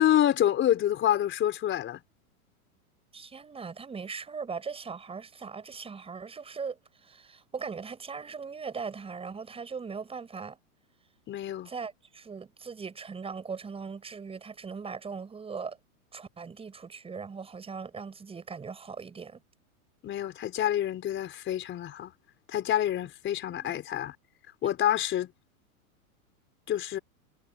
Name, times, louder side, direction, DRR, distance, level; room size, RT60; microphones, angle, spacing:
voice 1, 0.0-2.0 11.3-11.7 20.0-22.1 22.5-24.1 24.6-25.3 26.7-27.0, left 11 dB, 25° left, 4.7 m, -27 dB
voice 2, 3.1-10.6 11.6-15.8 16.1-19.4 23.5-23.8, right 5 dB, 15° right, 6.0 m, -39 dB
hypercardioid pair, 135°, 43 cm